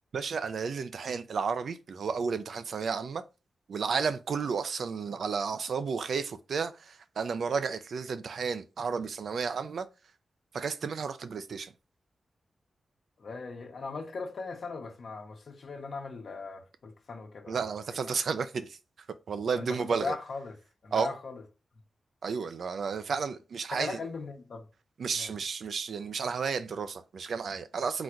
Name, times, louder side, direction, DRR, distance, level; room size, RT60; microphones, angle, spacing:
voice 1, 0.1-3.2 3.7-9.9 10.5-11.7 17.5-18.8 19.3-20.2 20.9-21.1 22.2-24.0 25.0-28.0, right 5 dB, 75° right, 0.4 m, -32 dB
voice 2, 13.2-17.6 17.9-18.0 19.5-20.6 20.8-21.4 23.7-24.7 25.1-25.3, left 4 dB, 70° left, 1.0 m, -39 dB
4.0 x 2.5 x 4.4 m
cardioid pair, 85°, 0 cm